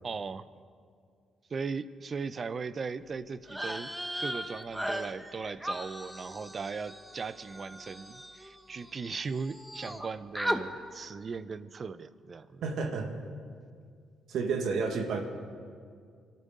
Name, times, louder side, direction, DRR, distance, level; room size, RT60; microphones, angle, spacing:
voice 1, 0.0-0.5 1.5-3.9 4.2-12.6 14.7-14.8, right 5 dB, 40° right, 15 dB, 0.6 m, -38 dB
sound 1, 3.5-9.1 9.3-10.1 10.3-10.6, equal, 5° right, 1.0 m, -37 dB
voice 2, 12.6-13.1 14.3-15.2, right 4 dB, 75° right, 4 dB, 1.7 m, -30 dB
24.0 x 13.5 x 3.8 m, 2.2 s
cardioid pair, 90°, 0 cm